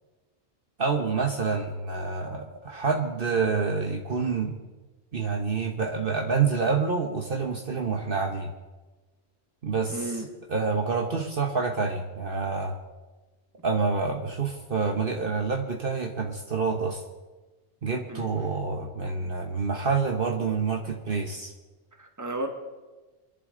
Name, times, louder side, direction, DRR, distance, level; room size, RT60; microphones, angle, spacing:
voice 1, 0.8-4.6 5.1-8.5 9.6-10.1 10.5-12.8 13.6-17.0 17.8-21.5, right 5 dB, 55° right, 3 dB, 1.4 m, -27 dB
voice 2, 9.9-10.3 18.1-18.3 22.0-22.5, right 2 dB, 15° right, 4 dB, 1.6 m, -33 dB
26.0 x 11.0 x 3.9 m, 1.2 s
omnidirectional pair, 1.2 m